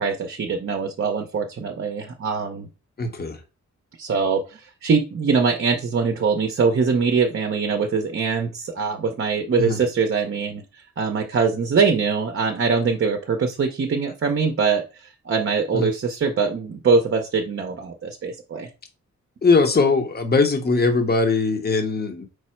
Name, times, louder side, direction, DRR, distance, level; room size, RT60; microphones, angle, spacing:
voice 1, 0.0-2.7 4.0-18.7, right 5 dB, 45° right, 0.6 m, -23 dB
voice 2, 3.0-3.4 9.6-9.8 15.7-15.9 19.4-22.3, left 3 dB, 35° left, 0.8 m, -20 dB
4.8 x 2.0 x 4.3 m
cardioid pair, 75°, 30 cm